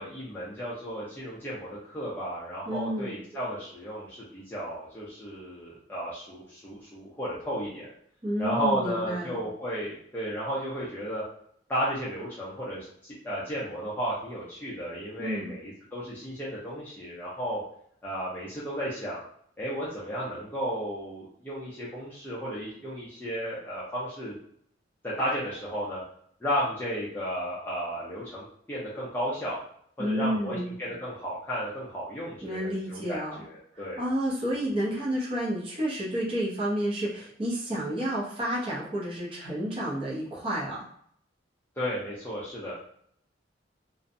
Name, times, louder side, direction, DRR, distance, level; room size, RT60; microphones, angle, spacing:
voice 1, 0.0-7.9 8.4-11.2 11.7-17.6 18.0-19.2 19.6-24.3 25.0-26.0 26.4-29.6 30.0-34.0 41.8-42.8, equal, 10° left, -8 dB, 0.5 m, -33 dB
voice 2, 2.7-3.1 8.2-9.4 15.2-15.6 30.0-30.7 32.4-33.4 34.0-40.9, equal, 30° right, -6 dB, 0.6 m, -30 dB
2.6 x 2.1 x 2.6 m, 0.66 s
head